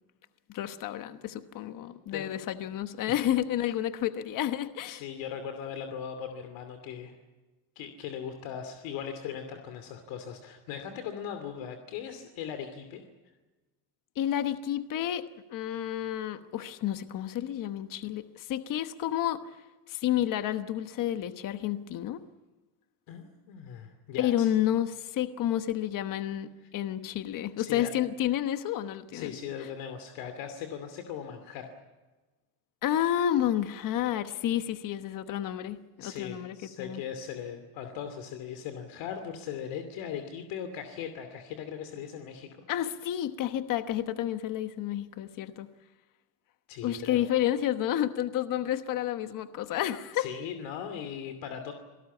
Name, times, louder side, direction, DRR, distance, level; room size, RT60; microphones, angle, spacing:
voice 1, 0.5-5.0 14.2-19.4 19.9-22.2 24.2-29.7 32.8-37.0 42.7-45.7 46.8-50.3, left 11 dB, 45° left, 10 dB, 1.2 m, -30 dB
voice 2, 4.8-7.1 7.8-13.0 23.1-24.5 27.6-27.9 29.1-31.7 36.0-42.6 46.7-47.2 50.1-51.7, left 8 dB, 75° left, 7 dB, 2.8 m, -39 dB
28.0 x 18.5 x 8.4 m, 1.2 s
cardioid pair, 155°, 46 cm